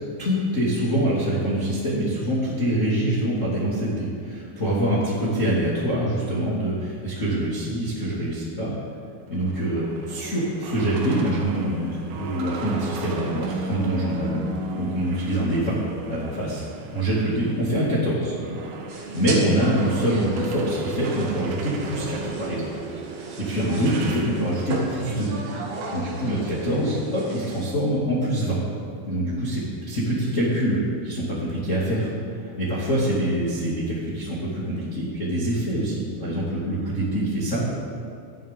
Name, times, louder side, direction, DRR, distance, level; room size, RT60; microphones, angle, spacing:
voice 1, 0.2-8.7 9.3-14.4 14.8-15.8 16.1-16.6 16.9-18.6 18.9-22.7 23.1-25.3 25.9-28.6 29.1-37.7, right 1 dB, 35° left, -7 dB, 1.3 m, -25 dB
sound 1, 9.3-17.7 18.0-24.9, right 3 dB, 85° right, 3.8 m, -35 dB
sound 2, 18.9-27.7, right 2 dB, 65° right, 3.9 m, -36 dB
26.0 x 9.2 x 3.7 m, 2.4 s
omnidirectional pair, 5.5 m